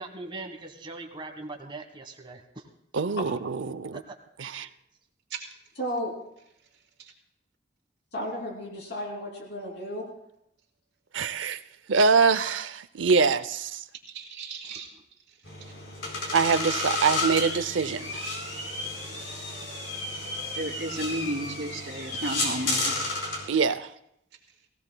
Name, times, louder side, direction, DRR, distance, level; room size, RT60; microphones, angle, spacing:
voice 1, 0.0-2.6 4.1-4.2 4.5-4.7 14.6-14.8, right 2 dB, 25° right, 4 dB, 1.5 m, -41 dB
voice 2, 2.9-4.0 4.4-4.7 11.1-11.6 11.9-13.8 16.3-18.3 23.5-23.9, right 5 dB, 85° right, 13 dB, 0.6 m, -24 dB
voice 3, 5.8-6.1 8.1-10.1, equal, 60° left, -1 dB, 3.1 m, -33 dB
voice 4, 14.1-14.9 20.5-23.1, right 1 dB, 60° right, -2 dB, 3.0 m, -34 dB
sound 1, 15.4-23.5, left 2 dB, 85° left, 4.2 m, -32 dB
22.5 x 16.0 x 2.3 m, 0.76 s
head